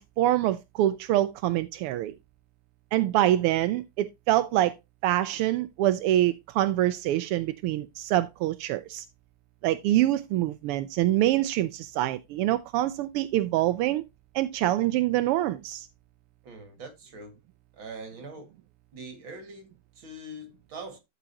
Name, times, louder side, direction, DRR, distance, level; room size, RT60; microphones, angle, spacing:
voice 1, 0.0-2.1 2.9-4.7 5.0-9.0 9.6-14.0 14.3-15.9, right 14 dB, 90° right, 1.6 m, -25 dB
voice 2, 16.4-17.4 17.8-18.5 18.9-21.0, right 2 dB, 60° right, 2.6 m, -43 dB
13.0 x 5.0 x 2.8 m
omnidirectional pair, 2.4 m